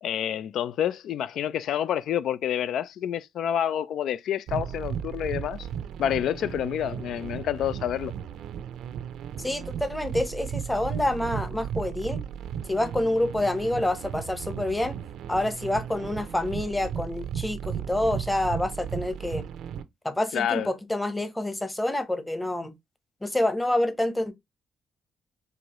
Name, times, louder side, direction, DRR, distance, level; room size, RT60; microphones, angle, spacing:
voice 1, 0.0-5.7 6.0-8.1 20.3-20.7, left 10 dB, 75° left, 0.4 m, -28 dB
sound 1, 4.5-19.8, right 8 dB, 80° right, 0.5 m, -35 dB
voice 2, 9.4-12.2 12.7-15.0 15.3-19.5 20.0-22.7 23.2-24.3, left 1 dB, 10° left, 0.9 m, -27 dB
4.6 x 2.6 x 2.9 m
cardioid pair, 90°, 0 cm